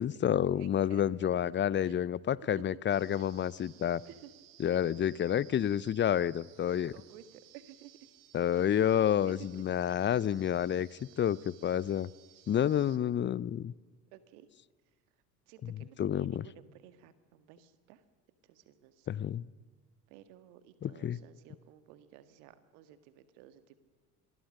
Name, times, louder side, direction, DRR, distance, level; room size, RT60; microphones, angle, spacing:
voice 1, 0.0-4.0 4.6-6.9 8.3-10.9 11.2-12.1 12.5-13.7 16.0-16.4 19.1-19.4 20.8-21.2, left 10 dB, 25° left, 22 dB, 0.6 m, -29 dB
voice 2, 0.6-2.0 2.5-2.8 3.1-3.3 4.1-4.3 6.9-7.9 9.3-9.6 14.1-14.5 15.5-18.0 18.4-19.2 20.1-23.7, right 12 dB, 65° right, 12 dB, 1.9 m, -54 dB
sound 1, 2.9-13.0, right 12 dB, 45° right, 2.1 m, -59 dB
26.5 x 20.5 x 6.5 m, 1.5 s
figure-of-eight pair, 65°, 47 cm